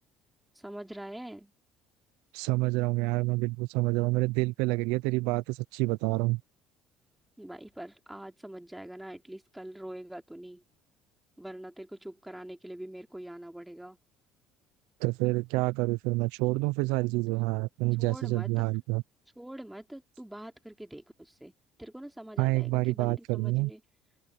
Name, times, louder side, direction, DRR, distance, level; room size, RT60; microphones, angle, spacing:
voice 1, 0.5-1.5 7.4-10.6 11.4-14.0 18.0-18.6 19.4-21.5 21.8-23.8, right 1 dB, 5° right, 3.0 m, -44 dB
voice 2, 2.3-6.4 15.0-19.0 22.4-23.7, right 23 dB, 85° right, 0.5 m, -28 dB
open air
supercardioid pair, 90°, 0 cm